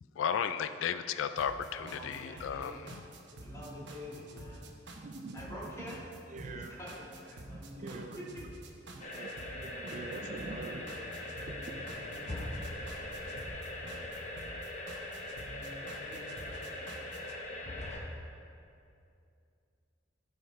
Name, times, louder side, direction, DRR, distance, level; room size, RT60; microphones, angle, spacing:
voice 1, 0.2-2.8, left 7 dB, 80° left, 0.3 m, -34 dB
sound 1, 1.4-17.4, right 1 dB, 65° right, 0.9 m, -49 dB
voice 2, 1.9-2.9 3.4-4.7 5.3-6.1 6.4-8.4 15.8-17.4, equal, 15° left, 2.0 m, -48 dB
voice 3, 5.0-6.0 6.3-6.8 7.5-8.2 8.9-10.9 11.6-11.9 12.9-13.0, right 3 dB, 40° right, 0.4 m, -44 dB
sound 2, 9.0-18.0, left 1 dB, 35° left, 1.0 m, -41 dB
13.0 x 5.7 x 4.2 m
head